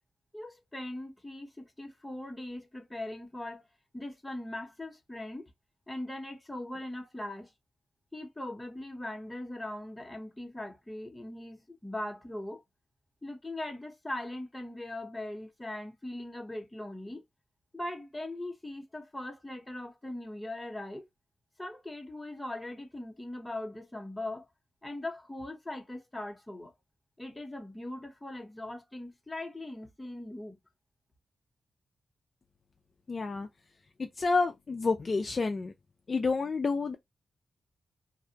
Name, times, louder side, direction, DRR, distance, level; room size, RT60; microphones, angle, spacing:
voice 1, 0.3-3.6 3.9-5.4 5.9-7.5 8.1-12.6 13.2-17.2 17.7-21.0 21.6-24.5 24.8-26.7 27.2-30.6, left 1 dB, 10° left, 0.8 m, -40 dB
voice 2, 33.1-33.5 34.2-35.7 36.1-37.0, left 4 dB, 40° left, 0.3 m, -29 dB
2.5 x 2.0 x 2.7 m
cardioid pair, 95°, 0 cm